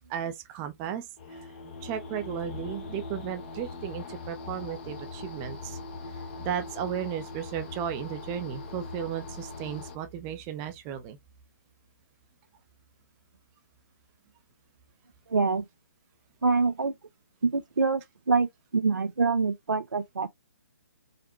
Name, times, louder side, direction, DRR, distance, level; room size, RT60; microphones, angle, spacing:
voice 1, 0.1-1.5 1.8-5.8 6.1-11.2, right 9 dB, 20° right, 0.6 m, -35 dB
sound 1, 1.2-10.0, left 3 dB, 30° left, 0.8 m, -40 dB
voice 2, 15.3-15.6 16.4-16.9 17.4-18.0 18.3-20.3, right 4 dB, 75° right, 0.6 m, -25 dB
5.0 x 2.1 x 3.0 m
figure-of-eight pair, 140°, 10 cm